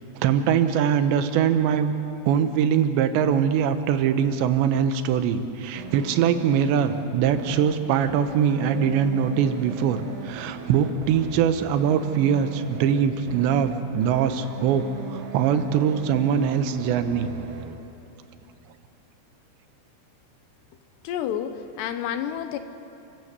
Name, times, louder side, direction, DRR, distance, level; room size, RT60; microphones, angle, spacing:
voice 1, 0.2-1.9 2.2-14.8 15.1-17.3, right 8 dB, 90° right, 9 dB, 3.3 m, -22 dB
sound 1, 5.8-17.8, right 6 dB, 60° right, 1.8 m, -38 dB
voice 2, 21.0-22.6, left 9 dB, 80° left, 9 dB, 3.0 m, -29 dB
30.0 x 14.5 x 8.2 m, 2.8 s
omnidirectional pair, 4.9 m